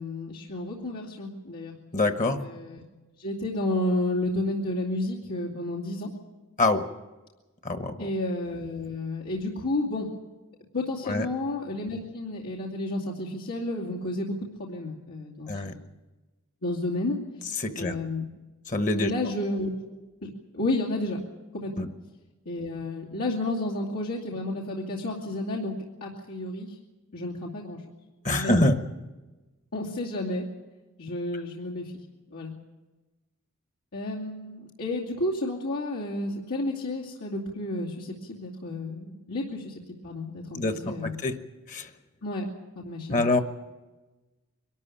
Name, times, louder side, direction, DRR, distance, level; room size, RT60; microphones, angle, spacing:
voice 1, 0.0-1.7 2.4-2.8 3.2-6.1 8.0-10.1 10.7-15.8 16.6-17.2 17.7-18.2 19.0-19.7 20.2-21.2 21.5-21.8 22.5-25.7 26.0-26.8 27.1-27.8 28.3-28.6 29.7-30.4 31.0-31.9 32.3-32.5 33.9-39.7 40.0-41.2 42.2-42.5 42.8-43.2, left 2 dB, 85° left, -4 dB, 2.6 m, -31 dB
voice 2, 1.9-2.4 6.6-6.9 7.6-8.0 11.1-11.2 15.5-15.7 17.6-17.9 18.7-19.1 21.8-21.9 28.2-28.8 40.5-41.3 41.7-41.9 43.1-43.4, left 2 dB, 35° left, 8 dB, 1.1 m, -25 dB
23.0 x 13.0 x 9.9 m, 1.2 s
head